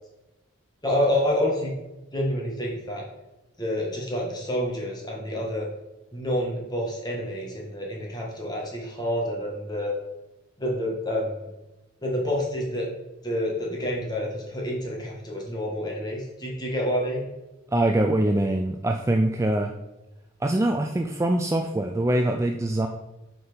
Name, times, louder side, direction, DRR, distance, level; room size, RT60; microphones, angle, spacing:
voice 1, 0.8-1.8 2.1-3.1 3.6-5.7 6.1-9.9 10.6-11.5 12.0-12.9 13.2-17.3, equal, 20° left, -2 dB, 1.7 m, -28 dB
voice 2, 17.7-19.7 20.4-22.9, right 1 dB, 15° right, 4 dB, 0.3 m, -23 dB
7.5 x 4.4 x 5.1 m, 1.0 s
head